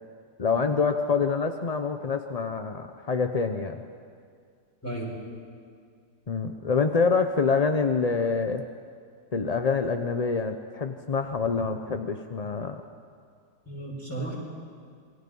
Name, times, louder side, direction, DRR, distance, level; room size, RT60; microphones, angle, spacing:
voice 1, 0.4-3.8 6.3-8.6 9.3-12.8, left 5 dB, 40° left, 6 dB, 0.5 m, -26 dB
voice 2, 4.8-5.2 13.7-14.3, right 2 dB, 10° left, -3 dB, 5.7 m, -34 dB
27.5 x 22.0 x 5.5 m, 2.2 s
omnidirectional pair, 1.9 m